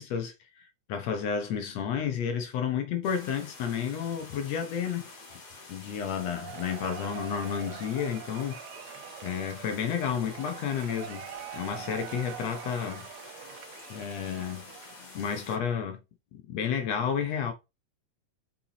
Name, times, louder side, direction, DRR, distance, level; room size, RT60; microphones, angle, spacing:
voice 1, 0.0-5.1 5.7-8.6 9.2-13.1 13.9-14.7 15.0-16.0 16.3-17.5, left 7 dB, 70° left, 1.7 m, -31 dB
sound 1, 3.0-15.6, left 3 dB, 40° left, 2.8 m, -48 dB
Cheering / Applause / Crowd, 6.2-15.1, right 11 dB, 80° right, 2.2 m, -44 dB
5.7 x 4.5 x 4.0 m
omnidirectional pair, 3.9 m